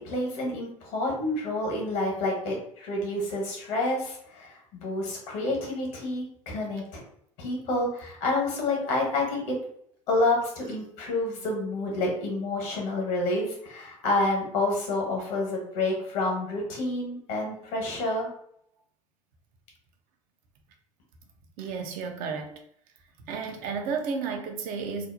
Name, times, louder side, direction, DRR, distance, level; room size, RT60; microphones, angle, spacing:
voice 1, 0.0-7.0 7.4-9.5 10.1-18.3, left 2 dB, 65° left, 1.0 m, -29 dB
voice 2, 21.6-22.6 23.3-25.1, right 5 dB, 55° right, 0.5 m, -32 dB
2.5 x 2.0 x 2.5 m
figure-of-eight pair, 65°, 17 cm